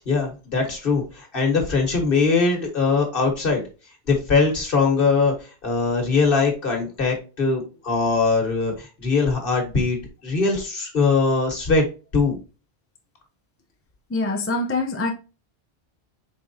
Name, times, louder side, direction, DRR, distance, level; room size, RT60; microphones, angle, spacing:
voice 1, 0.1-3.6 4.1-5.3 5.6-10.0 10.2-11.8 12.1-12.4, left 4 dB, 60° left, 1.5 m, -21 dB
voice 2, 14.1-15.1, left 2 dB, 15° left, 0.5 m, -24 dB
4.9 x 3.7 x 2.6 m
omnidirectional pair, 1.1 m